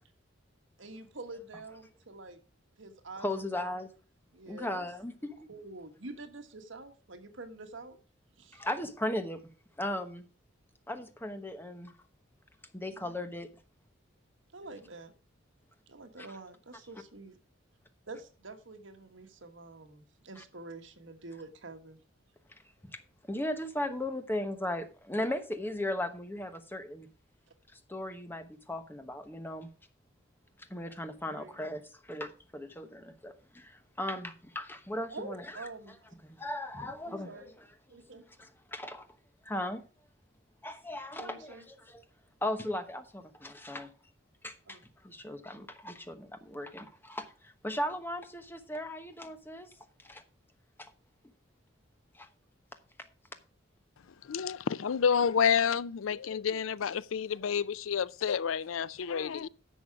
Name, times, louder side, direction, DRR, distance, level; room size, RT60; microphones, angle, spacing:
voice 1, 0.8-2.4 2.8-3.7 4.3-4.9 5.5-8.0 8.4-8.6 12.9-13.1 14.5-15.1 15.9-17.4 18.1-22.0 31.3-31.5 35.1-36.1 37.0-37.5 37.9-38.2 41.2-41.7 44.7-44.8, right 3 dB, 70° right, 1.6 m, -47 dB
voice 2, 3.2-3.9 4.5-5.4 8.5-9.4 9.8-10.3 10.9-11.9 12.7-13.5 16.2-16.3 20.4-20.5 22.8-23.0 23.3-27.1 27.7-29.7 30.7-35.7 36.2-37.7 38.4-39.1 39.4-39.8 40.6-42.0 42.4-43.9 44.4-44.8 45.0-49.7 50.0-50.2 50.8-50.9 52.1-52.3, left 1 dB, 10° left, 1.0 m, -37 dB
voice 3, 54.2-59.5, left 7 dB, 85° left, 0.5 m, -29 dB
10.5 x 7.0 x 4.7 m
head